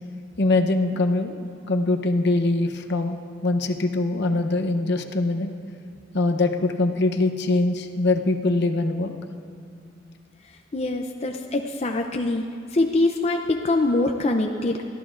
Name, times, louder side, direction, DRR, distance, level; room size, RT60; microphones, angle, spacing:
voice 1, 0.4-5.5 6.1-9.1, left 2 dB, 60° left, 5 dB, 0.8 m, -23 dB
voice 2, 10.7-12.4 12.7-14.9, left 2 dB, 35° left, 3 dB, 0.5 m, -23 dB
22.5 x 14.0 x 2.5 m, 2.3 s
head